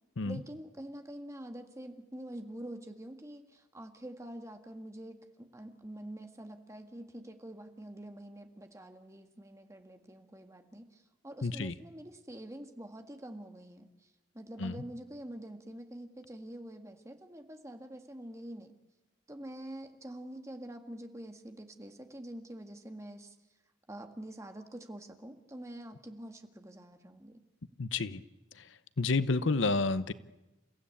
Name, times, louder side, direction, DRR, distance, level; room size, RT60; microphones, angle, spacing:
voice 1, 0.2-18.7 19.3-23.4 23.9-27.4, right 1 dB, 15° right, 5 dB, 1.8 m, -46 dB
voice 2, 11.4-11.7 14.6-14.7 27.8-28.2 29.0-30.1, left 3 dB, 75° left, 14 dB, 0.8 m, -29 dB
29.5 x 15.5 x 8.5 m, 1.0 s
head